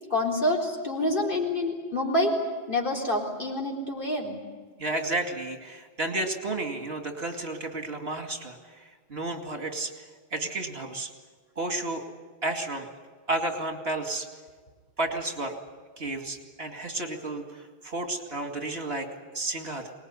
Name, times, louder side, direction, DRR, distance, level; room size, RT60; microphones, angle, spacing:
voice 1, 0.1-2.4 2.7-4.4, left 1 dB, 55° left, -1 dB, 4.1 m, -27 dB
voice 2, 4.8-10.0 10.3-11.1 11.6-12.0 12.4-12.9 13.3-14.3 15.0-15.6 16.0-19.1 19.3-19.9, right 2 dB, 75° right, 5 dB, 2.6 m, -32 dB
23.5 x 20.0 x 9.6 m, 1.5 s
omnidirectional pair, 1.1 m